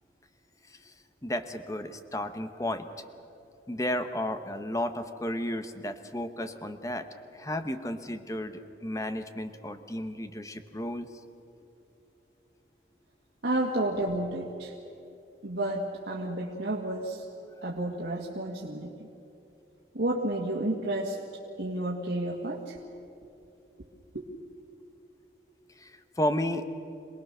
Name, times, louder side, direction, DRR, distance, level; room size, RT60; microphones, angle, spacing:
voice 1, 1.2-2.9 3.7-7.1 7.3-11.1 25.8-26.6, left 1 dB, 20° left, 9 dB, 1.0 m, -33 dB
voice 2, 13.4-14.7 15.4-17.2 17.6-19.1 19.9-21.2 21.6-22.8 24.1-24.2, right 1 dB, 90° right, -3 dB, 1.9 m, -31 dB
27.0 x 19.5 x 6.7 m, 2.7 s
head